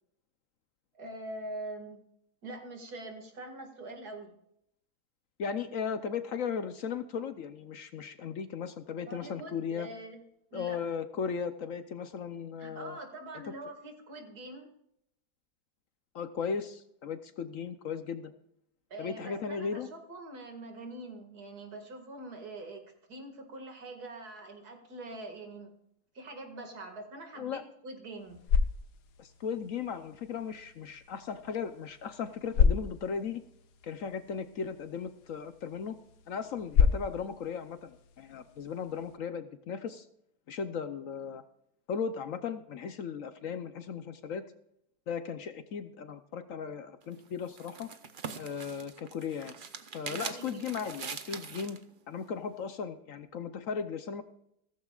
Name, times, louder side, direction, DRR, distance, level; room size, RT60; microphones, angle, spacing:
voice 1, 0.9-2.0 2.4-4.3 9.1-10.2 10.5-10.8 12.6-14.7 18.9-22.8 23.1-25.7 26.1-28.4 50.1-50.7, right 2 dB, 70° right, 4 dB, 2.6 m, -44 dB
voice 2, 5.4-9.9 10.5-13.0 16.1-18.3 19.0-19.9 27.4-27.6 29.2-33.4 33.8-36.0 36.3-40.1 40.5-41.4 41.9-44.4 45.1-47.9 48.3-49.5 49.9-51.8 52.1-54.2, left 6 dB, 60° left, 11 dB, 1.0 m, -36 dB
sound 1, 28.1-39.2, left 6 dB, 80° left, 1.5 m, -33 dB
sound 2, 47.0-51.8, right 6 dB, 40° right, 0.8 m, -42 dB
15.5 x 14.5 x 2.4 m, 0.76 s
omnidirectional pair, 1.7 m